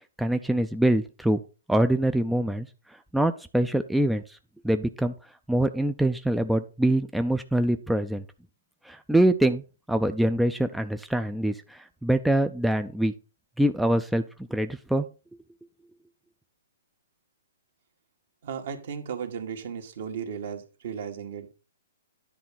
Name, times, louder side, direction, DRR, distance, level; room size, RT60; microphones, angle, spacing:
voice 1, 0.2-1.4 1.7-4.4 4.6-5.1 5.5-8.2 8.8-13.1 13.6-14.2 14.5-15.1, right 1 dB, ahead, 8 dB, 0.4 m, -24 dB
voice 2, 18.4-21.5, right 7 dB, 60° right, 6 dB, 1.7 m, -35 dB
10.5 x 3.7 x 5.7 m, 0.32 s
hypercardioid pair, 140°, 0 cm